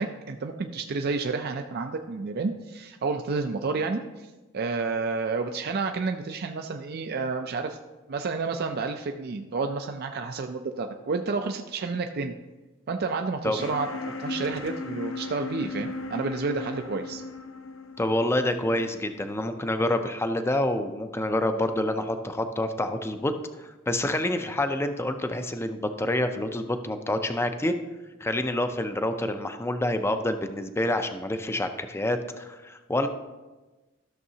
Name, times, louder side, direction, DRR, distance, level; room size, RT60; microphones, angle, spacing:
voice 1, 0.0-4.3 4.5-7.8 8.1-12.3 12.9-13.9 14.2-17.2, right 4 dB, 50° right, 5 dB, 0.4 m, -30 dB
sound 1, 13.6-19.5, left 3 dB, 80° left, 0.8 m, -37 dB
voice 2, 18.0-23.3 23.6-27.8 28.2-33.1, left 1 dB, 10° left, 8 dB, 0.4 m, -27 dB
14.0 x 6.5 x 2.8 m, 1.2 s
head